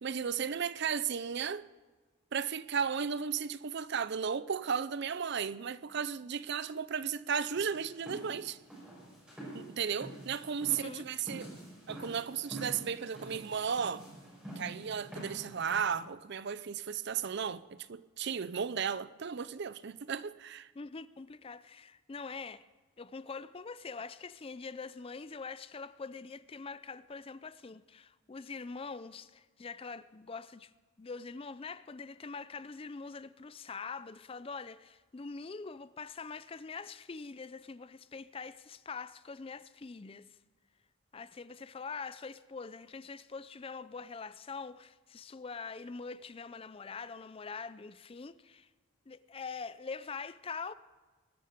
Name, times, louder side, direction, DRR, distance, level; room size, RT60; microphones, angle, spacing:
voice 1, 0.0-1.7 2.3-8.6 9.5-11.5 11.9-14.0 14.6-20.7, right 7 dB, 50° right, 0.5 m, -35 dB
sound 1, 7.5-16.0, right 1 dB, 5° right, 6.3 m, -47 dB
voice 2, 20.8-22.7 23.0-30.7 31.0-40.4 41.1-48.7 49.1-50.7, left 4 dB, 25° left, 0.4 m, -44 dB
21.0 x 12.5 x 5.1 m
head